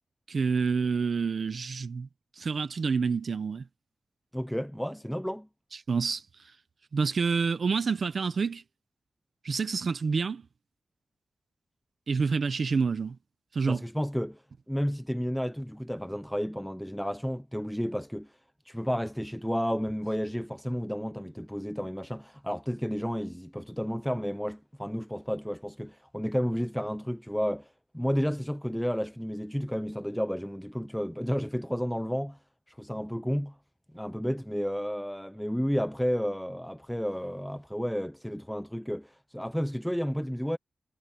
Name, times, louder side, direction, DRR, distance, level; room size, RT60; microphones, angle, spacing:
voice 1, 0.3-2.1 2.4-3.7 5.7-6.5 6.9-8.6 9.4-10.4 12.1-13.2 13.5-13.8, right 5 dB, 50° right, 0.8 m, -28 dB
voice 2, 4.3-5.5 13.7-14.4 14.7-18.3 18.7-32.4 32.7-33.6 33.9-40.6, equal, ahead, 0.5 m, -32 dB
wide cardioid pair, 145°, 0 cm